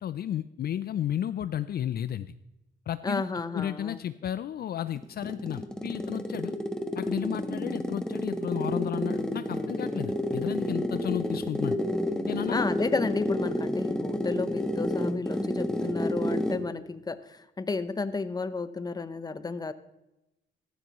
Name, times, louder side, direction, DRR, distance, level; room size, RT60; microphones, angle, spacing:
voice 1, 0.0-2.3 2.9-3.3 3.5-6.6 7.0-11.8 12.3-12.7, left 10 dB, 50° left, 14 dB, 0.4 m, -33 dB
voice 2, 3.0-4.0 12.5-19.7, left 4 dB, 20° left, 13 dB, 0.8 m, -32 dB
sound 1, 5.0-16.7, left 1 dB, 5° left, 1.1 m, -30 dB
15.0 x 12.5 x 3.0 m, 0.93 s
cardioid pair, 90°, 20 cm